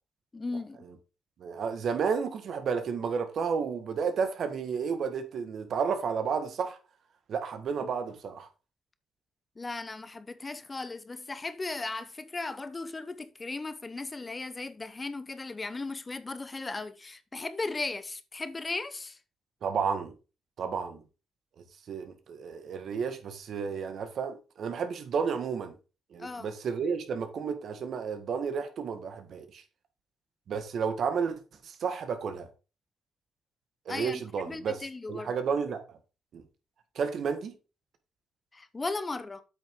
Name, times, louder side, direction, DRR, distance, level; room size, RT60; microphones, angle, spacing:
voice 1, 0.3-0.8 9.6-19.2 26.2-26.5 33.9-34.2 34.5-35.3 38.5-39.4, left 3 dB, 25° left, 0.8 m, -36 dB
voice 2, 1.4-6.8 7.3-8.5 19.6-20.1 20.6-21.0 21.9-25.7 26.1-29.6 30.5-32.5 33.8-35.8 36.3-36.4 36.9-37.5, right 6 dB, 60° right, 1.6 m, -32 dB
8.4 x 6.1 x 3.8 m
cardioid pair, 90°, 0 cm